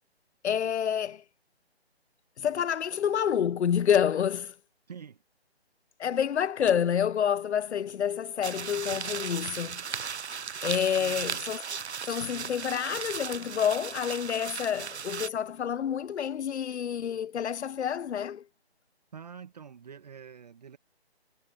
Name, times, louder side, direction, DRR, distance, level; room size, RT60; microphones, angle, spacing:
voice 1, 0.4-1.2 2.4-4.5 6.0-9.8 10.6-11.6 12.1-18.4, left 8 dB, 90° left, 0.5 m, -28 dB
voice 2, 4.9-5.2 10.9-11.5 19.1-20.8, right 7 dB, 40° right, 1.5 m, -46 dB
sound 1, 8.4-15.3, right 6 dB, 80° right, 0.8 m, -36 dB
figure-of-eight pair, 160°, 33 cm